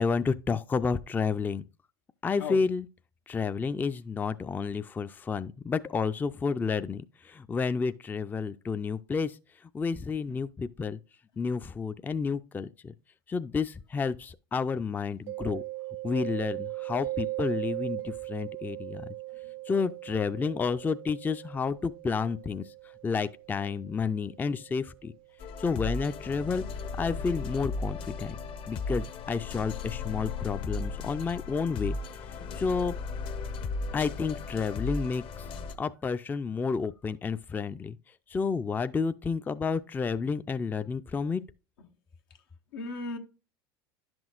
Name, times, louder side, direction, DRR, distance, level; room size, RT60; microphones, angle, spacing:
voice 1, 0.0-1.6 2.2-2.9 3.3-7.0 7.3-9.3 9.7-11.0 11.4-12.7 13.3-15.6 16.0-19.1 19.7-22.6 23.0-25.1 25.6-26.6 27.0-28.4 28.7-32.0 32.6-32.9 33.9-35.2 35.8-38.0 38.3-41.4, left 5 dB, 15° left, 0.3 m, -30 dB
Mallet percussion, 15.3-24.8, right 19 dB, 70° right, 0.4 m, -39 dB
sound 1, 25.4-35.7, left 4 dB, 45° left, 0.8 m, -36 dB
voice 2, 42.7-43.2, left 3 dB, 85° left, 1.1 m, -36 dB
10.5 x 6.1 x 2.4 m
hypercardioid pair, 90°, 12 cm